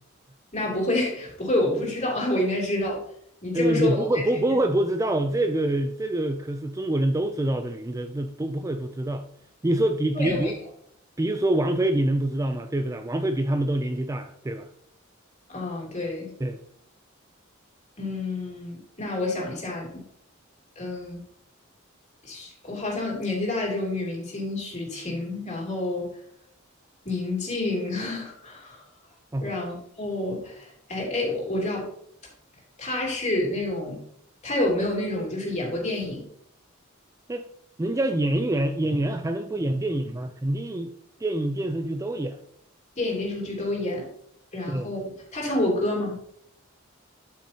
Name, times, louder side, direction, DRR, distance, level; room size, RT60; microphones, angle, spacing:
voice 1, 0.5-3.0 3.4-4.2 10.1-10.5 15.5-16.3 18.0-20.0 20.7-21.2 22.2-26.1 27.0-28.8 29.4-31.9 32.8-34.0 34.4-36.2 43.0-44.1 44.5-45.0 45.3-46.2, left 2 dB, 35° left, -3 dB, 3.1 m, -28 dB
voice 2, 3.5-9.2 9.6-10.5 11.2-14.7 16.4-16.6 29.3-29.5 37.3-37.4 37.8-40.9 41.2-42.4 44.7-44.9, right 1 dB, 15° right, 8 dB, 0.4 m, -25 dB
12.5 x 6.1 x 2.9 m, 0.71 s
head